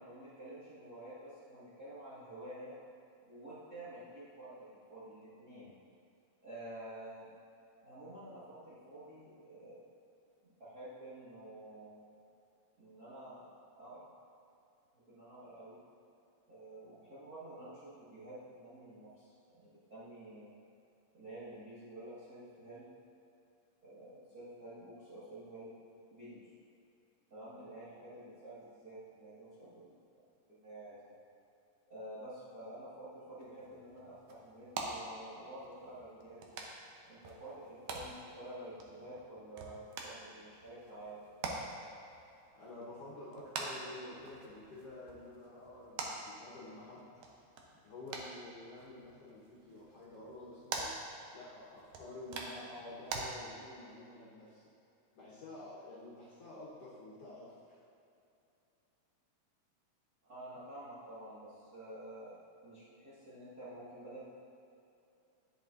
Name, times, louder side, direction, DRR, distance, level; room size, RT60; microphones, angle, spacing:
voice 1, 0.0-2.8 3.2-5.7 6.4-7.3 7.8-9.8 10.4-12.1 12.8-13.5 13.8-14.1 14.9-15.8 16.5-20.5 21.1-22.9 23.8-25.7 26.1-26.5 27.3-30.0 30.5-31.1 31.9-36.6 37.1-41.2 60.2-64.2, right 1 dB, 40° right, -12 dB, 1.6 m, -50 dB
sound 1, 33.4-53.2, right 3 dB, 75° right, 1.6 m, -46 dB
voice 2, 42.5-47.1 47.8-51.0 51.3-54.7 55.2-57.8, left 1 dB, 60° left, -8 dB, 1.7 m, -50 dB
10.5 x 6.6 x 2.5 m, 2.7 s
omnidirectional pair, 3.7 m